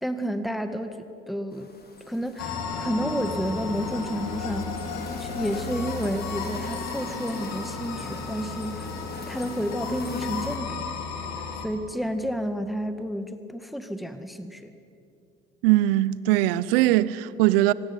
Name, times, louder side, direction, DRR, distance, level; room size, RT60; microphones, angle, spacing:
voice 1, 0.0-1.7 2.1-4.8 5.2-8.9 9.3-11.0 11.6-14.7, equal, ahead, 1.9 m, -31 dB
sound 1, 1.5-10.6, left 3 dB, 35° left, 5.1 m, -40 dB
sound 2, 2.4-11.7, left 4 dB, 65° left, 3.8 m, -34 dB
voice 2, 15.6-17.7, right 16 dB, 75° right, 0.9 m, -21 dB
25.0 x 19.0 x 9.8 m
hypercardioid pair, 55°, 29 cm